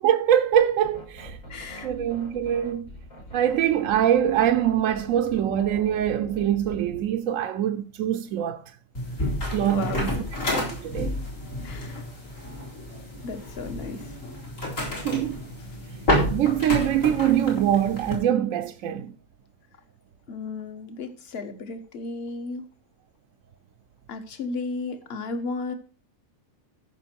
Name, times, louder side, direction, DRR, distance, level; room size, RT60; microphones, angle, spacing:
voice 1, 0.0-1.4 1.8-2.9 3.3-8.6 9.5-10.1 10.5-11.1 15.0-15.4 16.3-19.1, right 10 dB, 75° right, 1.0 m, -23 dB
sound 1, 0.5-7.2, equal, 85° left, 5.3 m, -43 dB
voice 2, 1.5-1.9 9.7-10.2 11.6-12.0 13.2-14.1 20.3-22.6 24.1-25.7, left 3 dB, 50° left, 1.5 m, -34 dB
sound 2, 9.0-18.2, left 1 dB, 70° left, 4.2 m, -30 dB
14.0 x 6.0 x 4.5 m
omnidirectional pair, 1.4 m